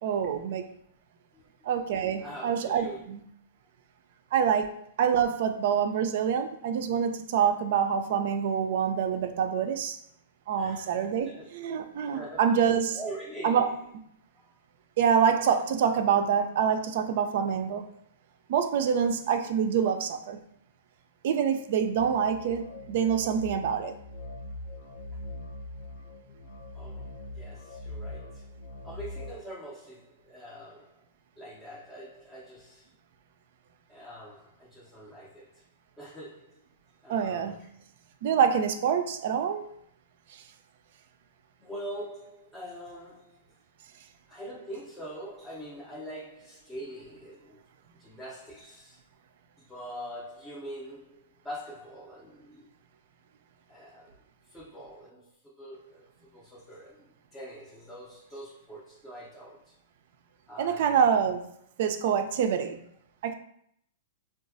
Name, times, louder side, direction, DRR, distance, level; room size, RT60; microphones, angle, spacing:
voice 1, 0.0-0.6 1.6-3.2 4.3-10.0 10.5-13.0 13.4-13.7 15.0-17.8 18.5-20.4 21.2-23.9 37.1-37.6 38.2-39.7 60.6-61.4 61.8-62.8 63.2-63.3, right 7 dB, 60° right, 7 dB, 0.3 m, -26 dB
voice 2, 2.2-3.1 10.6-11.5 12.1-12.6 12.9-13.8 14.3-14.4 26.7-28.5 28.8-31.0 31.4-32.9 33.9-35.6 36.0-36.6 37.0-37.7 41.6-43.5 44.3-47.7 47.9-49.0 49.6-52.7 53.7-59.8 60.5-61.1, equal, 10° left, -5 dB, 0.5 m, -44 dB
sound 1, 22.0-29.3, left 1 dB, 50° left, 0.6 m, -42 dB
3.8 x 2.3 x 2.5 m, 0.71 s
hypercardioid pair, 115°, 0 cm